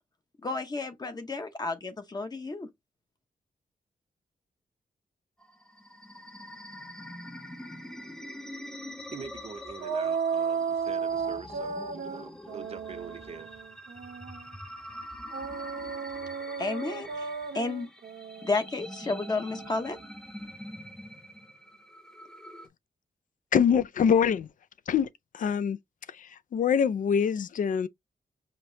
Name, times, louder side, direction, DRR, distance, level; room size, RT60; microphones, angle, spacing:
voice 1, 0.4-2.7 16.6-17.9 18.4-20.0, left 3 dB, 25° left, 0.8 m, -32 dB
sound 1, 5.4-22.7, equal, 5° left, 0.5 m, -45 dB
voice 2, 9.1-13.6, right 5 dB, 40° right, 0.6 m, -44 dB
sound 2, 9.8-14.5 15.3-20.0, right 6 dB, 75° right, 0.9 m, -34 dB
voice 3, 23.5-24.5 24.9-25.1 25.3-25.8 26.1-27.9, left 7 dB, 60° left, 0.4 m, -24 dB
5.1 x 2.9 x 2.7 m
wide cardioid pair, 155°, 16 cm